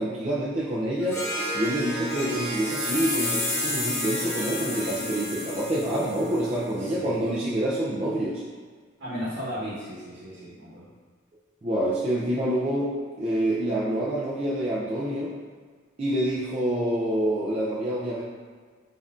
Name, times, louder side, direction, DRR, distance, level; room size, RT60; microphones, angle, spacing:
voice 1, 0.0-8.4 11.6-15.3 16.0-18.2, right 1 dB, 30° right, -7 dB, 0.4 m, -27 dB
Harp, 1.0-6.7, right 1 dB, 15° left, 0.8 m, -34 dB
sound 1, 2.2-6.4, left 3 dB, 30° left, 0.4 m, -32 dB
voice 2, 6.8-7.2 9.0-10.9, equal, 55° right, -10 dB, 1.1 m, -35 dB
5.4 x 2.6 x 2.4 m, 1.5 s
head